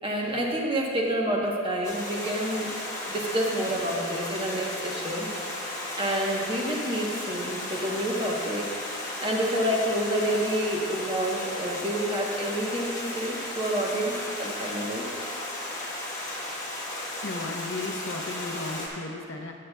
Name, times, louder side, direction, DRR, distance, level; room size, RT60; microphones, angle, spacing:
voice 1, 0.0-2.7 3.1-5.7 6.0-8.6 9.2-15.0, right 1 dB, 25° right, -2 dB, 1.0 m, -28 dB
Stream, 1.8-18.9, left 1 dB, 15° left, 1.2 m, -35 dB
voice 2, 17.0-19.5, left 3 dB, 60° left, 2 dB, 0.7 m, -35 dB
16.0 x 7.3 x 2.3 m, 2.5 s
head